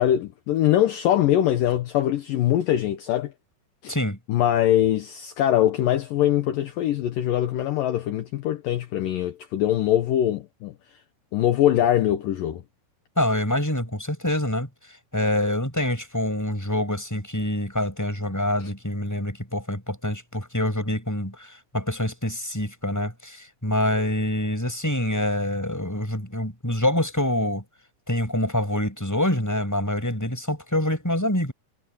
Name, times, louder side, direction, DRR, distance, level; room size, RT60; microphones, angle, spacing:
voice 1, 0.0-3.3 3.8-3.9 4.3-10.7 11.3-12.6, left 12 dB, 70° left, 2.3 m, -22 dB
voice 2, 3.9-4.2 13.2-14.7 15.1-27.6 28.1-31.5, left 1 dB, 5° left, 6.6 m, -26 dB
omnidirectional pair, 5.0 m